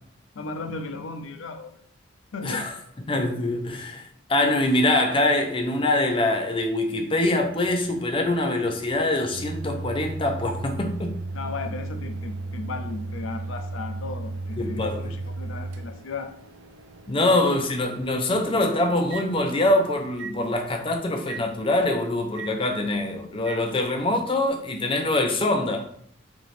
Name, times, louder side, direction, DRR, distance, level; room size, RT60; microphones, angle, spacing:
voice 1, 0.3-1.8 2.3-2.7 11.3-16.3 17.3-17.4, left 3 dB, 75° left, 7 dB, 0.5 m, -35 dB
voice 2, 2.4-2.7 3.1-11.2 14.6-15.1 17.1-25.9, left 2 dB, 25° left, 4 dB, 0.5 m, -24 dB
Microwave oven, 7.2-19.8 20.2-20.4 21.3-21.4 22.4-22.5 23.5-23.6, right 2 dB, 65° right, 0.4 m, -36 dB
4.0 x 3.0 x 3.2 m, 0.67 s
head